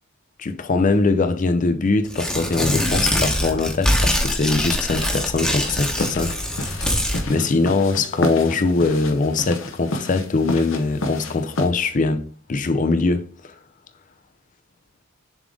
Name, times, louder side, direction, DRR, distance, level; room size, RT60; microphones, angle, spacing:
voice 1, 0.4-6.9 7.3-13.5, left 3 dB, 40° left, 0.5 m, -22 dB
Tearing, 2.1-7.2, equal, 5° left, 1.0 m, -23 dB
sound 1, 5.0-11.7, left 1 dB, 65° left, 0.9 m, -31 dB
7.1 x 3.7 x 3.7 m
head